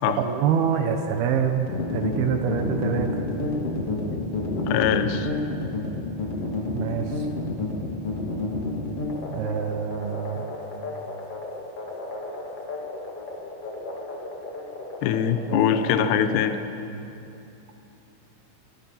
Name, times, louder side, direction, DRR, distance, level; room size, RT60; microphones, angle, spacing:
voice 1, 0.2-3.2 6.7-7.3 9.3-10.5, right 7 dB, 85° right, 5 dB, 2.1 m, -26 dB
sound 1, 1.7-16.5, left 2 dB, 40° left, 2.3 m, -30 dB
voice 2, 4.6-5.3 15.0-16.6, left 8 dB, 80° left, 9 dB, 2.5 m, -22 dB
24.0 x 21.0 x 5.7 m, 2.7 s
omnidirectional pair, 6.0 m